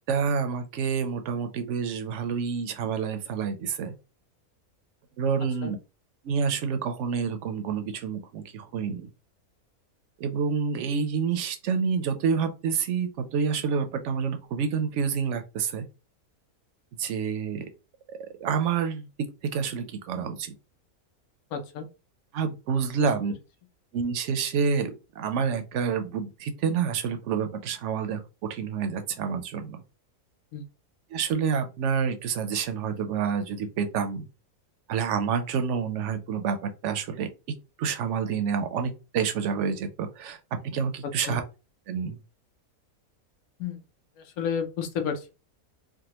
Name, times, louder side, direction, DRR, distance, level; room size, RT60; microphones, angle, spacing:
voice 1, 0.1-3.9 5.2-5.8 6.2-9.1 10.2-15.9 17.0-17.7 18.4-19.1 19.5-20.5 22.3-23.3 23.9-24.9 25.2-28.2 28.5-29.8 31.1-34.2 34.9-37.3 37.8-40.4 40.6-41.4 41.9-42.2, right 6 dB, 65° right, 0.8 m, -28 dB
voice 2, 21.5-21.9 23.0-23.1 30.5-30.6 41.3-41.4 43.6-43.8 44.2-45.3, left 7 dB, 75° left, 1.2 m, -31 dB
3.5 x 2.2 x 2.9 m
omnidirectional pair, 1.5 m